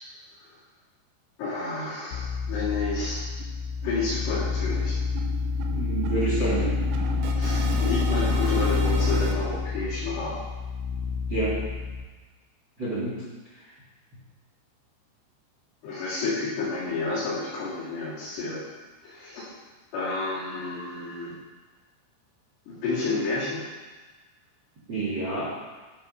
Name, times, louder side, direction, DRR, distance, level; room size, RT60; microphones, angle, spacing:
voice 1, 1.4-3.2 3.8-5.0 7.4-10.4 15.8-18.6 19.0-19.5 19.9-21.4 22.7-23.6, left 3 dB, 60° left, -8 dB, 3.6 m, -30 dB
sound 1, 2.1-12.0, left 5 dB, 85° left, 3.2 m, -28 dB
sound 2, 2.1-2.2 2.5-2.6 3.0-3.1 3.4-9.4, right 6 dB, 85° right, 3.2 m, -35 dB
voice 2, 5.7-6.7 11.3-11.5 12.8-13.2 24.9-25.5, right 3 dB, 70° right, -7 dB, 1.1 m, -28 dB
11.0 x 4.1 x 5.3 m, 1.3 s
omnidirectional pair, 5.9 m